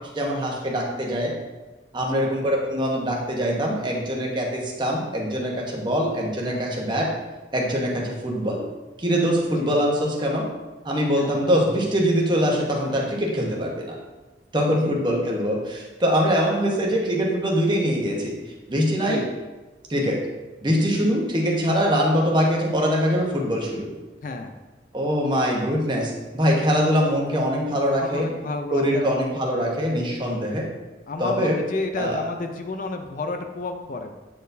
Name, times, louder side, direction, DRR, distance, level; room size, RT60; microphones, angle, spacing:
voice 1, 0.1-1.3 1.9-7.1 7.5-8.6 9.0-10.4 10.8-13.9 14.5-18.4 18.7-19.3 19.9-20.2 20.6-23.9 24.9-28.3 28.7-30.6 31.2-31.6 32.0-32.2, equal, 25° right, -2 dB, 1.0 m, -23 dB
voice 2, 2.0-2.3 6.5-6.7 9.6-9.7 11.2-11.4 14.7-15.0 19.0-19.3 24.2-24.5 28.0-29.3 31.1-34.2, left 3 dB, 45° left, 5 dB, 0.4 m, -31 dB
8.3 x 4.3 x 2.7 m, 1.2 s
head